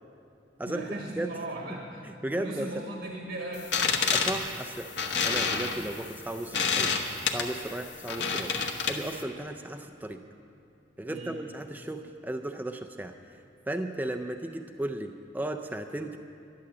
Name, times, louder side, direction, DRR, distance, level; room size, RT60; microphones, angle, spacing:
voice 1, 0.7-2.0 2.3-3.7 11.1-11.4, right 1 dB, 90° right, 0 dB, 1.5 m, -37 dB
voice 2, 2.0-2.8 4.1-4.9 5.2-6.9 7.3-10.2 11.0-13.4 13.7-16.2, right 1 dB, 10° right, 6 dB, 0.4 m, -35 dB
sound 1, 3.6-9.2, left 5 dB, 75° left, 1.1 m, -29 dB
11.5 x 11.5 x 7.4 m, 2.6 s
head